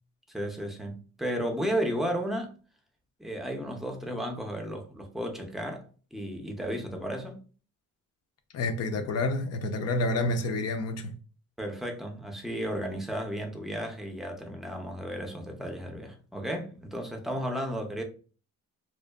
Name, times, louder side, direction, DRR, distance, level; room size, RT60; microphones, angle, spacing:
voice 1, 0.3-2.5 3.2-7.4 11.6-18.0, equal, ahead, 0.5 m, -33 dB
voice 2, 8.5-11.1, left 2 dB, 55° left, 0.5 m, -29 dB
2.6 x 2.1 x 2.2 m
cardioid pair, 90°, 30 cm